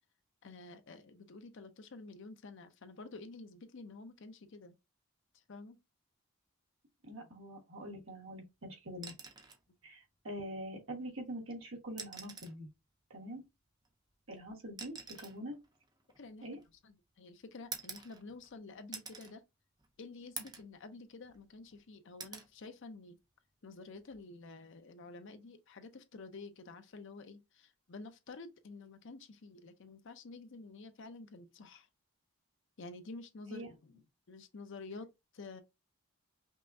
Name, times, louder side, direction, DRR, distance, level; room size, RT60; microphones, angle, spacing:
voice 1, 0.4-4.7 5.5-5.8 7.2-7.3 15.2-15.3 16.2-19.4 20.0-23.2 23.6-31.9 32.8-33.9 34.3-35.1 35.3-35.6, left 3 dB, 55° left, 0.5 m, -50 dB
voice 2, 7.0-9.1 9.8-12.7 13.1-13.4 14.3-15.6 16.4-16.6 33.5-33.7, equal, 60° right, 1.4 m, -44 dB
sound 1, 8.9-9.7 11.1-11.2 11.9-12.6 13.8-16.9 17.7-18.5 18.9-19.3 19.8-19.9 20.4-20.7 21.2-21.8 22.2-22.5 24.0-24.2, right 5 dB, 20° right, 0.5 m, -47 dB
5.4 x 2.2 x 2.6 m
head